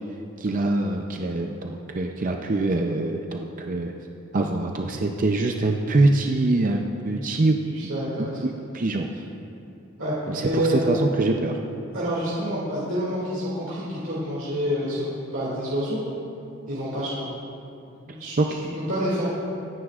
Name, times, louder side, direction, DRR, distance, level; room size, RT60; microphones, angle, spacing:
voice 1, 0.4-3.9 4.3-7.6 8.2-8.3 8.7-9.1 10.3-11.6 18.4-18.5, right 2 dB, 40° right, 3 dB, 0.5 m, -24 dB
voice 2, 7.7-8.4 10.0-10.1 10.4-10.9 11.9-16.0 16.7-17.3 18.0-19.3, equal, 65° right, -8 dB, 2.3 m, -28 dB
23.5 x 9.6 x 2.4 m, 2.8 s
head